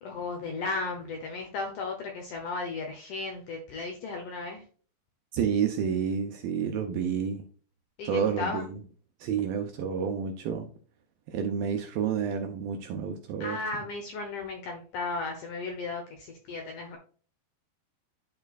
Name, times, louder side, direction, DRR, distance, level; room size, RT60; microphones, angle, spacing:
voice 1, 0.0-4.6 8.0-8.7 13.4-17.0, left 3 dB, 70° left, 2.0 m, -35 dB
voice 2, 5.3-7.5 8.1-8.8 9.2-10.7 11.3-13.6, right 7 dB, 75° right, 2.2 m, -29 dB
11.5 x 4.4 x 2.4 m
omnidirectional pair, 4.8 m